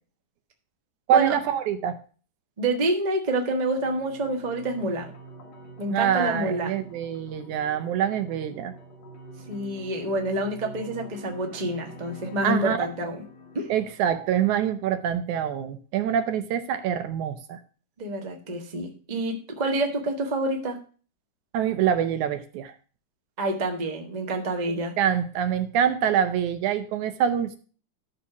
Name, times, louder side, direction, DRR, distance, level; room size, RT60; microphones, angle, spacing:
voice 1, 1.1-2.0 5.9-8.7 12.4-12.9 13.7-17.6 21.5-22.7 25.0-27.6, right 9 dB, 75° right, 9 dB, 2.1 m, -25 dB
voice 2, 2.6-5.1 5.8-6.9 9.5-13.2 13.5-13.7 18.0-20.8 23.4-24.9, right 1 dB, 35° right, 2 dB, 0.6 m, -28 dB
sound 1, 3.8-14.8, right 1 dB, 60° left, 2.5 m, -45 dB
12.5 x 4.2 x 5.9 m, 0.39 s
omnidirectional pair, 3.7 m